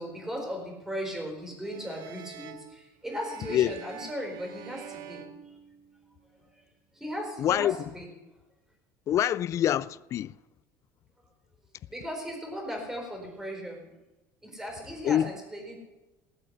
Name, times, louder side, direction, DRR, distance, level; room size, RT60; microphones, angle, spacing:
voice 1, 0.0-5.5 6.5-6.6 6.9-8.1 11.9-14.0 14.4-15.8, equal, 5° right, 4.4 m, -37 dB
sound 1, 1.6-6.2, right 10 dB, 60° right, 1.1 m, -46 dB
voice 2, 7.4-7.8 9.1-10.3 15.0-15.3, left 11 dB, 40° left, 0.4 m, -25 dB
18.5 x 8.1 x 6.6 m
cardioid pair, 130°, 8 cm